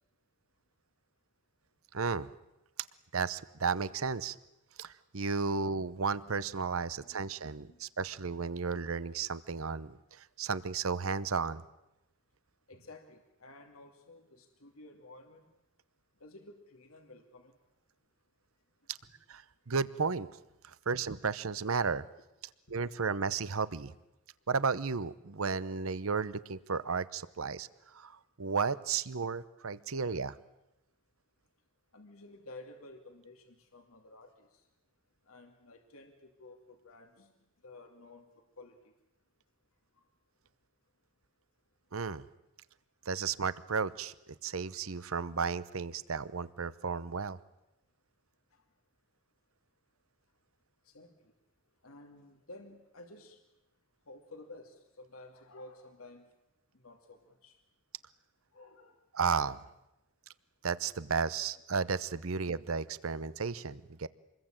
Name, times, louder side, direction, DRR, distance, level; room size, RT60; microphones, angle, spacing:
voice 1, 1.9-2.3 3.1-4.4 4.8-11.6 18.9-19.0 19.3-19.4 19.7-20.3 20.6-22.0 22.7-23.9 24.5-30.4 41.9-42.3 43.1-47.4 59.1-59.6 60.6-64.1, right 5 dB, 80° right, 16 dB, 0.9 m, -33 dB
voice 2, 7.0-7.3 7.7-7.8 12.7-15.5 16.2-17.6 31.9-34.7 35.3-37.3 37.6-38.9 48.5-48.6 50.8-51.3 51.8-53.4 54.1-56.2 56.7-57.6 58.5-59.0, left 2 dB, 90° left, 4 dB, 2.7 m, -53 dB
26.5 x 21.5 x 9.0 m, 0.94 s
head